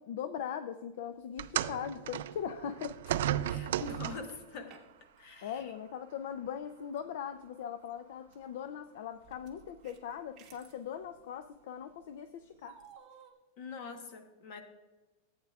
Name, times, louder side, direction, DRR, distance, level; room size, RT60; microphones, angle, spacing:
voice 1, 0.0-3.0 5.4-12.8, left 8 dB, 55° left, 11 dB, 0.4 m, -40 dB
sound 1, 1.4-4.4 5.4-5.6 6.4-6.5, right 11 dB, 65° right, 0.3 m, -34 dB
voice 2, 3.5-4.8 5.2-5.7 13.6-14.6, left 4 dB, 40° left, 6 dB, 1.0 m, -44 dB
sound 2, 4.5-5.2 5.5-5.6 7.0-7.1 7.8-8.4 9.2-10.8 12.7-13.3, right 7 dB, 20° right, 1.0 m, -57 dB
15.0 x 8.7 x 2.3 m, 1.2 s
supercardioid pair, 180°, 0 cm